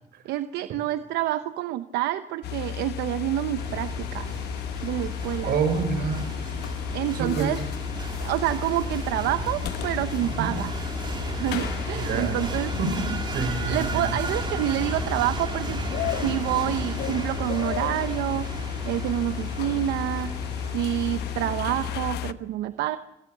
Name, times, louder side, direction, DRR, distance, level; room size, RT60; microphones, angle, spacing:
voice 1, 0.2-4.3 4.8-5.5 6.9-7.6 8.2-10.7 11.3-12.7 13.6-15.8 16.2-18.5 18.8-20.3 20.7-23.0, right 13 dB, 85° right, 11 dB, 0.9 m, -28 dB
sound 1, 2.4-22.3, left 12 dB, 75° left, 0.9 m, -33 dB
sound 2, 3.6-22.1, right 3 dB, 25° right, 3.0 m, -35 dB
voice 2, 5.5-6.3 7.1-7.5 10.4-10.6 12.0-12.4 12.8-14.2, right 5 dB, 65° right, 10 dB, 4.5 m, -27 dB
25.5 x 18.5 x 7.4 m, 0.93 s
cardioid pair, 110°, 17 cm